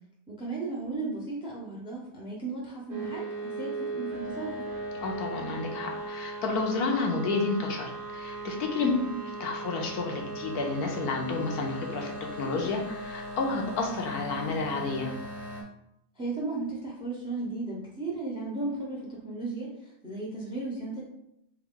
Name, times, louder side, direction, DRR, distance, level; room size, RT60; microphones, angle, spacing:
voice 1, 0.3-4.7 8.8-9.2 16.2-21.0, right 3 dB, 5° right, -3 dB, 0.7 m, -35 dB
sound 1, 2.9-15.6, right 2 dB, 40° right, 0.9 m, -38 dB
voice 2, 5.0-8.9 9.4-12.1 12.4-15.1, left 4 dB, 80° left, 1 dB, 1.2 m, -30 dB
3.6 x 3.4 x 3.7 m, 0.78 s
omnidirectional pair, 1.6 m